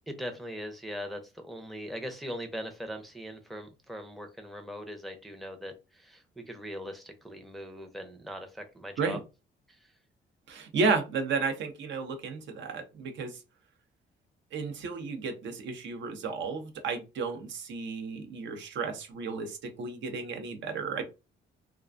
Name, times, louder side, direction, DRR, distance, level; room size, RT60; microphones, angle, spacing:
voice 1, 0.1-9.2 9.7-10.0, equal, ahead, 4 dB, 0.5 m, -40 dB
voice 2, 10.5-13.4 14.5-21.0, right 4 dB, 70° right, 6 dB, 0.6 m, -33 dB
2.3 x 2.1 x 2.5 m, 0.28 s
cardioid pair, 90°, 20 cm